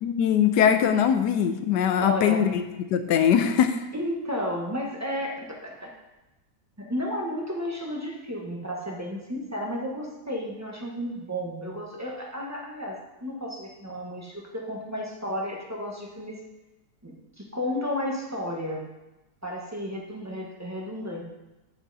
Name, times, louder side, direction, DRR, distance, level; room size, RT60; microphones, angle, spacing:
voice 1, 0.0-2.6 2.9-3.8, left 8 dB, 80° left, 9 dB, 1.2 m, -21 dB
voice 2, 2.0-2.4 3.9-5.9 6.8-16.4 17.0-18.8 19.4-21.2, equal, 10° right, -2 dB, 1.0 m, -32 dB
9.7 x 5.8 x 4.0 m, 1.0 s
omnidirectional pair, 1.8 m